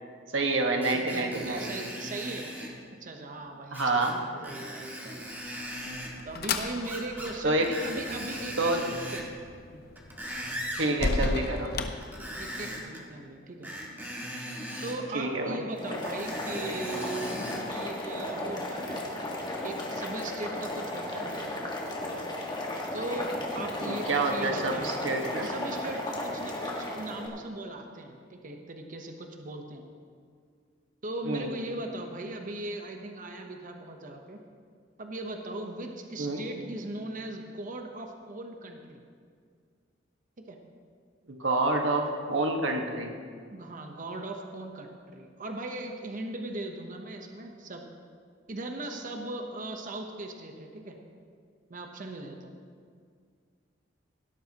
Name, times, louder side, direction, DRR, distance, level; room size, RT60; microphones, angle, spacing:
voice 1, 0.3-1.8 3.7-4.2 7.4-7.7 8.6-8.8 10.8-11.7 15.1-15.6 23.9-25.5 31.2-31.5 36.2-36.4 41.3-43.1, right 2 dB, 80° right, 2 dB, 1.5 m, -28 dB
Screech, 0.8-2.7 3.7-4.1 4.4-6.1 6.8-7.4 7.6-9.3 9.8-10.9 12.0-13.0 13.6-15.0 16.0-17.6 18.2-18.3, equal, 10° right, 1.8 m, -39 dB
voice 2, 0.9-2.5 2.9-5.3 6.2-9.3 12.4-13.7 14.8-19.0 19.6-21.5 22.9-24.9 25.4-29.8 31.0-34.4 35.0-39.0 40.5-40.6 43.5-47.9 48.5-51.0 51.7-52.6, right 2 dB, 45° right, 3 dB, 0.9 m, -38 dB
sound 1, 5.4-12.8, left 3 dB, 55° left, 0.7 m, -36 dB
Boiling, 15.7-27.3, left 1 dB, 25° left, 1.6 m, -35 dB
17.5 x 12.0 x 2.9 m, 2.1 s
head